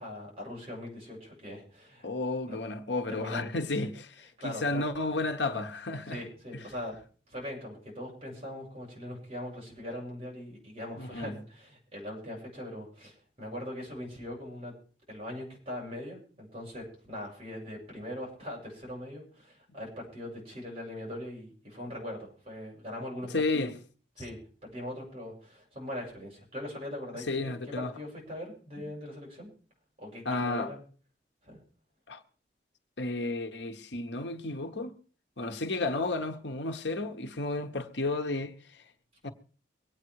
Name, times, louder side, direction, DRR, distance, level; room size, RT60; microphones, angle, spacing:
voice 1, 0.0-2.1 2.4-2.6 3.1-3.5 3.8-3.9 4.4-4.8 6.1-7.0 7.3-14.7 15.1-23.7 24.2-29.5 30.0-30.8 31.4-31.6, left 1 dB, 30° right, 7.6 m, -41 dB
voice 2, 2.0-6.2 11.0-11.3 23.3-23.7 27.3-27.9 30.2-30.7 32.1-32.2 33.0-34.9 35.4-38.8 39.2-39.3, left 2 dB, 70° left, 1.3 m, -32 dB
23.0 x 9.1 x 4.8 m
head